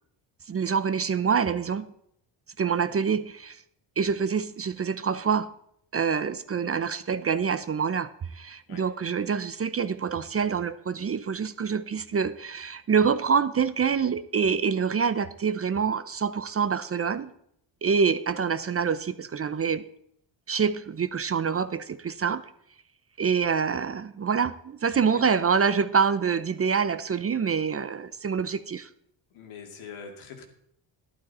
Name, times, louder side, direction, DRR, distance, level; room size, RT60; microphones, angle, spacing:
voice 1, 0.5-1.9 2.6-3.6 4.0-5.5 5.9-17.3 17.8-19.8 20.5-22.4 23.2-28.9, right 6 dB, 30° right, 13 dB, 0.6 m, -26 dB
voice 2, 29.3-30.4, left 5 dB, 80° left, 3 dB, 2.6 m, -43 dB
12.5 x 11.5 x 4.2 m, 0.71 s
cardioid pair, 90°, 48 cm